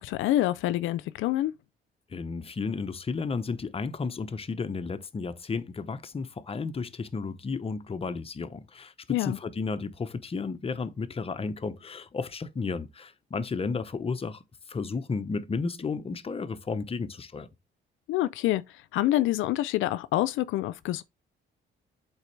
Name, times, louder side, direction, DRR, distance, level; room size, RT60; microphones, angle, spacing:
voice 1, 0.0-1.5 9.1-9.4 18.1-21.0, left 14 dB, 80° left, 0.4 m, -27 dB
voice 2, 2.1-8.9 9.2-14.4 14.7-17.5, left 4 dB, 30° left, 0.8 m, -33 dB
8.1 x 3.9 x 3.3 m
cardioid pair, 90°, 20 cm